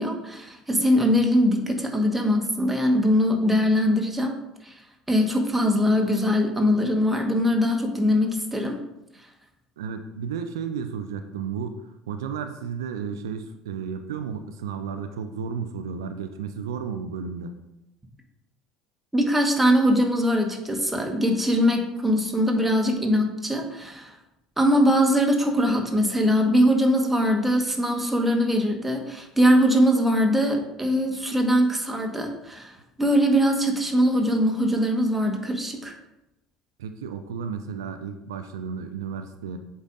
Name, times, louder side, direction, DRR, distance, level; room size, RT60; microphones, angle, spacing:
voice 1, 0.0-4.3 4.6-4.7 5.1-8.8 19.1-24.2 24.6-35.9, equal, 5° right, 2 dB, 1.3 m, -22 dB
voice 2, 9.8-11.8 12.1-17.5 36.8-39.6, right 6 dB, 70° right, 8 dB, 0.4 m, -33 dB
8.0 x 5.3 x 2.5 m, 0.90 s
figure-of-eight pair, 60°, 2 cm